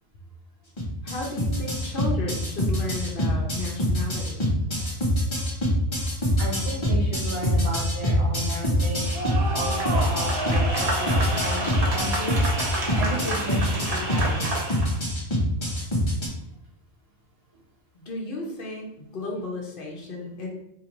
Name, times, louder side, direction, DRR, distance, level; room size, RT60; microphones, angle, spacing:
sound 1, 0.8-16.3, equal, 30° left, 0.7 m, -25 dB
voice 1, 1.0-4.5 17.9-20.5, left 2 dB, 60° left, -1 dB, 0.9 m, -34 dB
voice 2, 6.4-11.6 11.9-12.4 12.9-14.5, equal, 65° right, -5 dB, 1.3 m, -33 dB
sound 2, 9.0-15.0, right 1 dB, 40° right, 0.7 m, -29 dB
3.8 x 2.8 x 3.0 m, 0.81 s
omnidirectional pair, 1.0 m